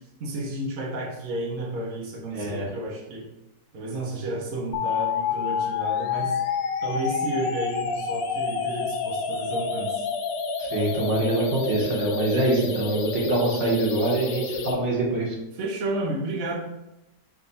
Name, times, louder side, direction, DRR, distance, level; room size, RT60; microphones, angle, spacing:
voice 1, 0.0-3.2 3.7-6.4 6.8-10.0 12.5-12.8 15.5-16.6, right 1 dB, 55° right, -2 dB, 1.2 m, -32 dB
voice 2, 2.3-2.7 10.6-15.4, right 2 dB, 75° right, -2 dB, 1.7 m, -25 dB
sound 1, 4.7-14.7, left 5 dB, 85° left, 1.3 m, -28 dB
3.5 x 3.5 x 3.9 m, 0.92 s
omnidirectional pair, 1.9 m